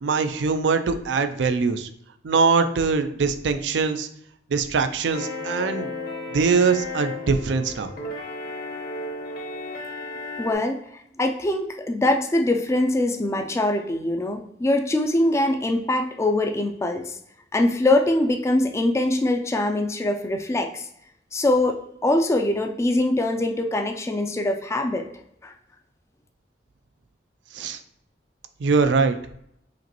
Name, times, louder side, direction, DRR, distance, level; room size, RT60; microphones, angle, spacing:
voice 1, 0.0-1.9 2.2-4.1 4.5-5.9 6.3-7.9 27.5-27.8 28.6-29.2, right 4 dB, 85° right, 9 dB, 0.4 m, -22 dB
sound 1, 5.1-10.5, left 2 dB, 60° left, 1.0 m, -34 dB
voice 2, 10.4-10.8 11.2-17.2 17.5-20.9 21.3-25.1 25.4-25.5, left 1 dB, 15° left, 4 dB, 0.3 m, -23 dB
5.1 x 3.0 x 2.9 m, 0.73 s
head